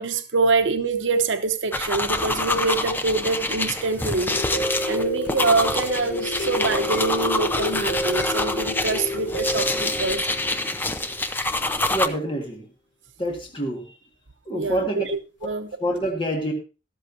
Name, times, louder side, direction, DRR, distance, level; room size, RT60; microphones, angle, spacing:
voice 1, 0.0-4.4 4.7-10.2 14.5-15.7, right 3 dB, 75° right, 8 dB, 0.9 m, -25 dB
sound 1, 1.7-12.1, left 2 dB, 10° left, 0.6 m, -26 dB
sound 2, 4.3-11.2 15.4-15.5 16.0-16.1, left 1 dB, 65° left, 4.0 m, -30 dB
voice 2, 11.9-12.7 13.2-14.0 14.5-15.0 15.4-15.6 15.8-16.5, right 1 dB, 25° left, 1 dB, 1.9 m, -27 dB
13.0 x 13.0 x 2.8 m, 0.32 s
head